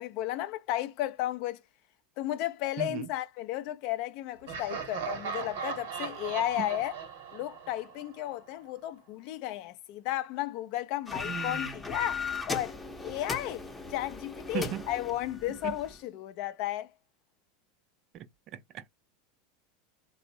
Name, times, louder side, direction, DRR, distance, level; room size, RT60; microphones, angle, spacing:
voice 1, 0.0-1.6 2.2-6.9 7.3-13.6 13.9-16.9, left 14 dB, 60° left, 0.4 m, -34 dB
voice 2, 2.8-3.1 6.6-6.7 11.2-11.7 14.5-14.9 15.5-15.8 18.1-18.9, right 10 dB, 45° right, 0.4 m, -38 dB
Laughter, 4.5-8.3, right 6 dB, 75° right, 0.9 m, -38 dB
sound 1, 11.1-16.0, left 4 dB, 15° left, 0.6 m, -37 dB
2.5 x 2.0 x 2.6 m
hypercardioid pair, 95°, 0 cm